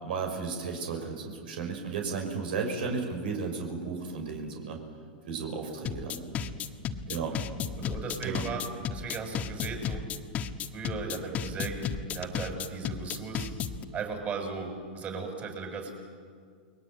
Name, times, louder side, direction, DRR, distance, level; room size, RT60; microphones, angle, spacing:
voice 1, 0.0-4.8 5.3-6.2 7.1-7.4 8.2-8.5, right 5 dB, 75° right, 3 dB, 5.9 m, -34 dB
sound 1, 5.9-13.8, left 8 dB, 30° left, 1.6 m, -33 dB
voice 2, 7.8-8.6 8.9-10.0 10.7-11.9 12.1-13.6 13.9-16.0, right 4 dB, 30° right, 4 dB, 6.8 m, -37 dB
29.5 x 22.0 x 9.1 m, 2.1 s
hypercardioid pair, 130°, 5 cm